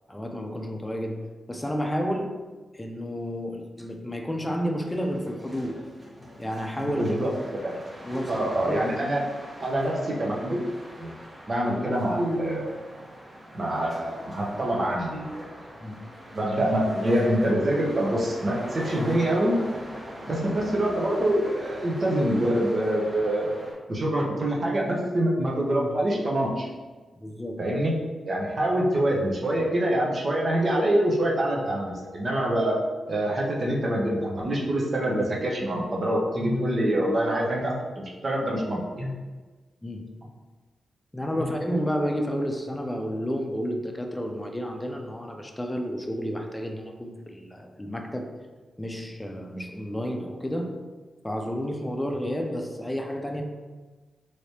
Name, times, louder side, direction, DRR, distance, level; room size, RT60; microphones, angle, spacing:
voice 1, 0.1-2.3 2.7-5.8 6.4-7.2 8.0-8.9 15.8-16.0 27.1-27.7 39.8-40.2 41.1-48.3 48.8-50.7 51.2-53.4, equal, 15° left, 3 dB, 0.6 m, -31 dB
sound 1, 4.8-23.7, equal, 30° right, 1.1 m, -42 dB
voice 2, 6.8-7.3 7.6-7.8 8.3-9.2 9.6-10.6 11.0-11.1 11.5-12.7 13.5-15.5 16.3-19.6 20.3-23.5 23.9-26.7 27.6-28.0 28.3-32.8 33.1-39.1, right 1 dB, 50° right, -3 dB, 0.9 m, -25 dB
3.2 x 3.1 x 2.8 m, 1.3 s
supercardioid pair, 45°, 0 cm